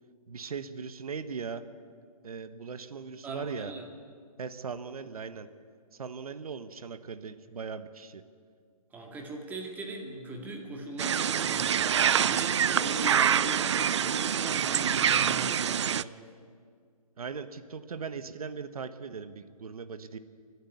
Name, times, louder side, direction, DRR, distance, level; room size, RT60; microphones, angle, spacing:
voice 1, 0.3-1.6 2.2-3.7 4.4-5.5 5.9-8.2 17.2-20.2, right 5 dB, 65° right, 11 dB, 1.5 m, -39 dB
voice 2, 3.2-3.8 8.9-16.2, right 2 dB, 10° right, 1 dB, 2.2 m, -40 dB
sound 1, 11.0-16.0, right 8 dB, 45° right, 0.5 m, -26 dB
29.0 x 12.0 x 9.6 m, 2.1 s
hypercardioid pair, 155°, 20 cm